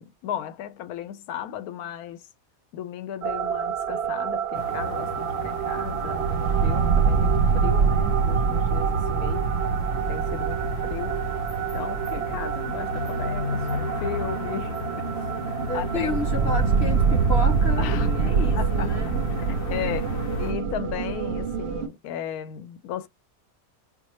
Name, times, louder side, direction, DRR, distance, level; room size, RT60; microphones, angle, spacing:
voice 1, 0.0-2.2 2.7-9.4 10.1-11.2 11.7-15.1 15.7-16.1 17.8-18.1 18.5-18.9 19.4-20.1 20.4-23.1, left 10 dB, 90° left, 1.1 m, -35 dB
sound 1, 3.2-21.9, right 6 dB, 60° right, 0.7 m, -25 dB
sound 2, 4.5-20.5, left 3 dB, 70° left, 1.2 m, -34 dB
voice 2, 15.7-19.2, left 2 dB, 45° left, 1.6 m, -31 dB
4.8 x 2.1 x 2.8 m
omnidirectional pair, 1.5 m